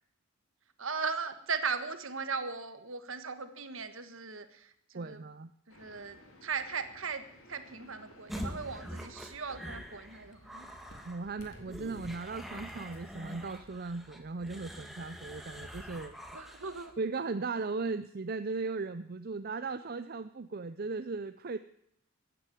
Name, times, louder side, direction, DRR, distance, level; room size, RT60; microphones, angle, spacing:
voice 1, 0.8-5.2 5.7-7.2 7.5-10.7 16.3-16.9, right 5 dB, 65° right, 10 dB, 1.6 m, -38 dB
voice 2, 4.9-5.5 11.0-16.2 17.0-21.6, right 3 dB, 45° right, 11 dB, 0.5 m, -37 dB
sound 1, 5.7-13.7, left 1 dB, 70° left, 3.6 m, -56 dB
sound 2, 8.3-17.0, equal, ahead, 1.6 m, -45 dB
15.5 x 10.0 x 9.3 m, 0.75 s
head